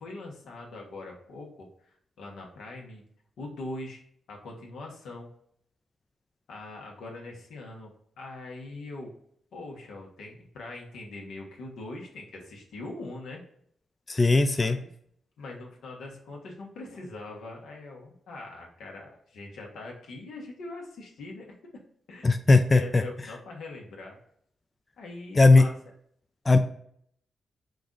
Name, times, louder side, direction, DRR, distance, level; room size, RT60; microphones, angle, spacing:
voice 1, 0.0-3.0 3.4-4.0 4.3-5.3 6.5-7.9 8.2-9.1 9.5-13.4 14.6-14.9 15.4-21.5 22.1-22.3 22.7-24.2 25.0-25.8, left 2 dB, 85° left, 0 dB, 1.1 m, -42 dB
voice 2, 14.1-14.8 22.2-22.8 25.4-25.6 26.5-26.6, left 3 dB, 25° left, 8 dB, 0.3 m, -18 dB
5.1 x 2.5 x 3.8 m, 0.66 s
cardioid pair, 75°, 0 cm